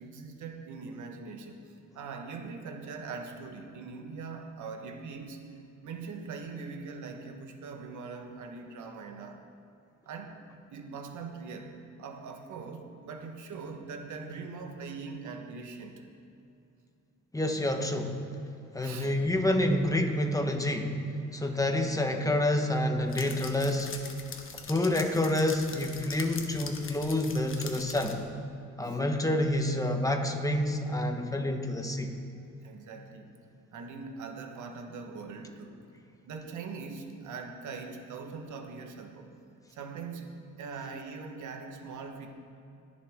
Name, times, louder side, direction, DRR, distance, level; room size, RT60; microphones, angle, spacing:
voice 1, 0.0-1.6 1.9-5.4 5.8-9.4 10.0-10.4 10.7-11.7 12.0-16.0 18.8-19.1 21.5-21.6 28.8-29.0 32.6-33.3 33.7-35.8 36.3-39.3 39.7-42.3, right 4 dB, 75° right, 3 dB, 1.5 m, -41 dB
voice 2, 17.3-18.2 18.7-20.9 21.3-23.9 24.7-28.2 28.8-32.1, left 1 dB, 10° left, 4 dB, 1.3 m, -28 dB
sound 1, 19.1-19.9 23.1-28.1, left 5 dB, 45° left, 1.2 m, -43 dB
21.0 x 7.1 x 3.7 m, 2.7 s
cardioid pair, 90°, 30 cm